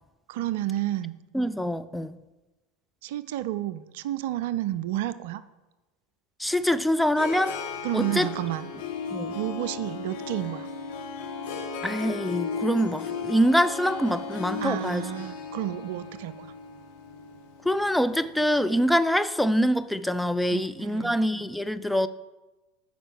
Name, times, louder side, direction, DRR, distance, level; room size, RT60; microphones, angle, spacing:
voice 1, 0.3-1.1 3.0-5.4 7.8-8.7 9.3-10.7 14.6-16.5 20.5-21.2, right 14 dB, 60° right, 0.4 m, -31 dB
voice 2, 1.3-2.2 6.4-7.6 7.9-8.3 9.1-9.4 11.8-15.1 17.6-22.1, equal, 5° left, 0.4 m, -25 dB
Harp, 6.5-18.6, left 5 dB, 65° left, 1.4 m, -36 dB
9.2 x 5.5 x 6.2 m
figure-of-eight pair, 75°, 0 cm